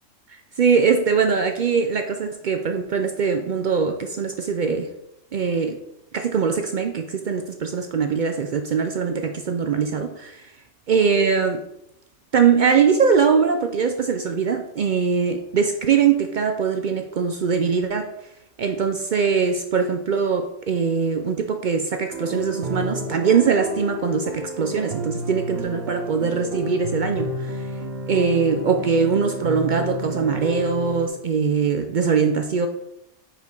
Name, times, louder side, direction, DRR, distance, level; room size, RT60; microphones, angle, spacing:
voice 1, 0.6-4.9 5.3-5.8 6.1-10.4 10.9-11.6 12.3-18.1 18.6-27.7 28.1-32.7, right 6 dB, 70° right, 6 dB, 0.4 m, -22 dB
sound 1, 22.1-31.1, equal, 55° right, 1.0 m, -30 dB
5.0 x 4.3 x 5.3 m, 0.84 s
omnidirectional pair, 1.4 m